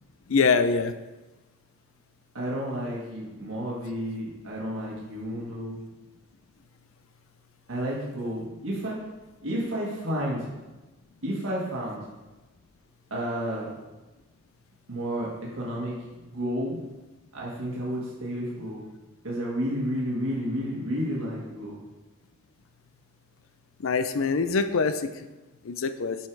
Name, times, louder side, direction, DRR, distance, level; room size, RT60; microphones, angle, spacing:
voice 1, 0.3-0.9 23.8-25.1 25.6-26.2, left 4 dB, 80° left, 11 dB, 0.5 m, -24 dB
voice 2, 2.3-5.8 7.7-9.0 9.4-10.5 11.2-12.0 13.1-13.7 14.9-16.0 16.3-16.8 17.3-18.8 19.2-21.8, equal, 80° right, -5 dB, 1.6 m, -31 dB
7.3 x 5.5 x 4.6 m, 1.1 s
head